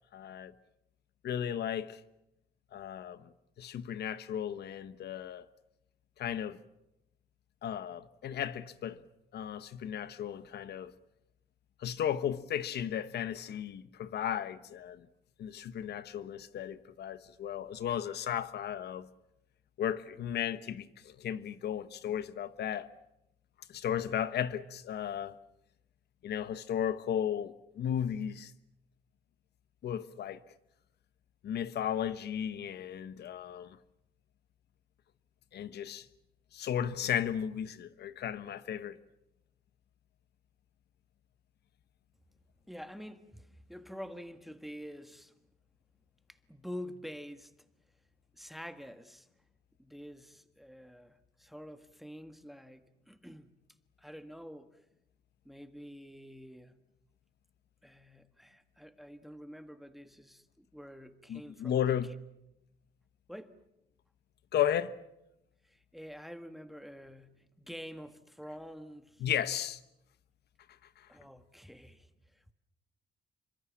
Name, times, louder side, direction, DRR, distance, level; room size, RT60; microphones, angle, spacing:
voice 1, 0.1-0.5 1.2-2.0 2.7-3.2 3.6-5.5 6.2-6.6 7.6-9.0 9.3-10.9 11.8-15.1 15.4-19.1 19.8-22.9 23.7-25.3 26.2-28.5 29.8-30.4 31.4-33.8 35.5-36.1 36.5-39.0 61.3-62.1 64.5-65.0 69.2-69.8 71.0-71.1, left 9 dB, 75° left, 1.2 m, -35 dB
voice 2, 42.7-45.3 46.3-47.5 48.4-49.3 49.8-53.7 54.0-54.8 55.4-56.8 57.8-62.0 63.3-63.6 65.6-69.2 71.1-72.5, equal, ahead, 1.4 m, -47 dB
28.0 x 24.5 x 7.4 m
cardioid pair, 110°, 17 cm